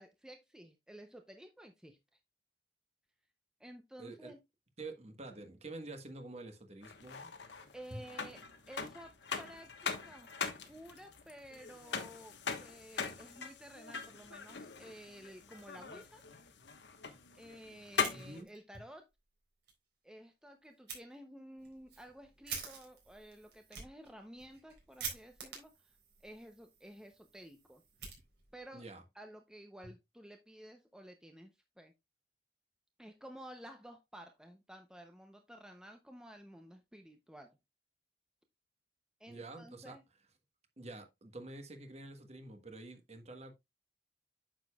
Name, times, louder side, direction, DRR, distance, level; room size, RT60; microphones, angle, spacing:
voice 1, 0.0-2.0 3.6-4.4 7.7-8.4 8.7-10.4 10.6-16.2 17.3-19.1 20.0-25.9 26.2-27.8 28.5-28.8 29.1-31.9 33.0-37.6 39.2-40.0, right 1 dB, 5° right, 0.6 m, -53 dB
voice 2, 4.0-4.3 4.8-7.3 7.9-8.0 18.1-18.5 28.7-29.0 39.3-40.0 40.8-43.5, right 2 dB, 35° right, 1.3 m, -48 dB
sound 1, 6.8-18.4, left 6 dB, 75° left, 1.2 m, -42 dB
Fire, 17.9-18.8 19.1-19.2 19.6-19.7 20.9-21.0 21.6-28.7, right 6 dB, 65° right, 3.9 m, -48 dB
9.1 x 6.8 x 2.3 m
head